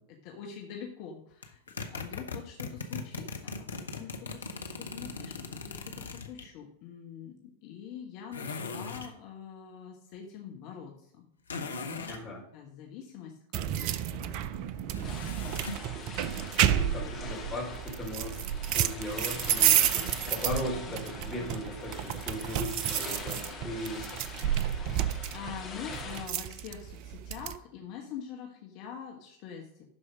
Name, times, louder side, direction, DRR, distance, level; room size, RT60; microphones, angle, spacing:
voice 1, 0.0-1.6 1.9-7.3 7.6-11.3 11.6-12.2 12.5-13.3 13.7-15.1 16.7-17.1 25.0-29.8, left 7 dB, 45° left, 2 dB, 1.3 m, -45 dB
sound 1, 1.4-6.5 8.3-9.1 11.5-12.2 14.9-15.9, left 4 dB, 70° left, 0.9 m, -39 dB
voice 2, 12.1-12.4 16.7-18.4 18.7-24.1, left 1 dB, 5° left, -4 dB, 3.6 m, -38 dB
sound 2, 13.5-27.6, right 11 dB, 45° right, 0.5 m, -31 dB
sound 3, 15.0-26.3, left 4 dB, 25° left, 2.3 m, -44 dB
12.0 x 4.8 x 5.0 m, 0.74 s
figure-of-eight pair, 90°, 0 cm